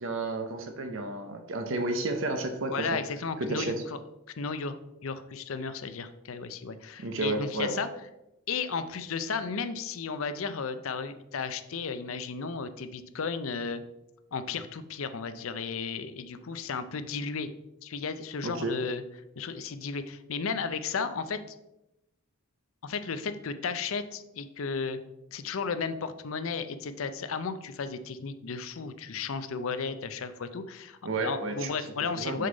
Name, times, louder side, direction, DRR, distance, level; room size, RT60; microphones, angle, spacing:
voice 1, 0.0-3.0 3.4-3.8 7.0-7.8 18.4-18.8 31.0-31.7 32.1-32.5, right 2 dB, 60° right, 5 dB, 0.8 m, -31 dB
voice 2, 2.7-4.0 4.4-4.8 5.0-7.9 8.5-13.8 14.3-17.5 17.8-19.0 19.4-21.4 22.8-25.0 25.3-32.5, left 5 dB, 65° left, 11 dB, 0.5 m, -34 dB
6.5 x 5.4 x 3.9 m, 0.90 s
head